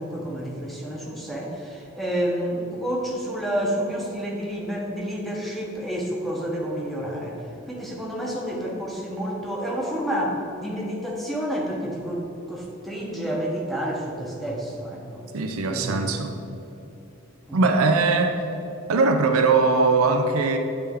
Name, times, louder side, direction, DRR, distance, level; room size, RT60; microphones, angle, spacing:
voice 1, 0.0-7.4 7.7-15.2 15.7-16.2 17.5-17.6, equal, ahead, -3 dB, 0.8 m, -29 dB
voice 2, 15.3-16.3 17.5-18.4 18.9-20.6, right 3 dB, 85° right, 5 dB, 0.5 m, -20 dB
8.2 x 3.3 x 3.5 m, 2.7 s
head